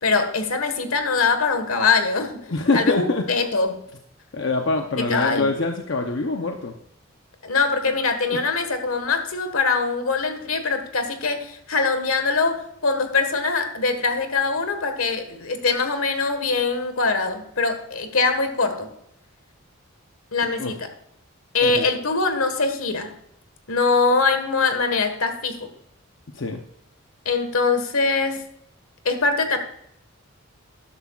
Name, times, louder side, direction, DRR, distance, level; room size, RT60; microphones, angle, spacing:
voice 1, 0.0-2.4 2.7-3.8 5.0-5.5 7.4-18.9 20.3-20.9 21.5-23.1 23.7-25.7 27.2-28.4 29.0-29.6, left 4 dB, 80° left, 8 dB, 1.5 m, -23 dB
voice 2, 2.5-3.3 4.3-6.7 8.3-8.4 20.6-20.7 21.6-21.9 26.3-26.6, left 3 dB, 55° left, 4 dB, 0.8 m, -24 dB
13.0 x 11.0 x 2.4 m, 0.74 s
head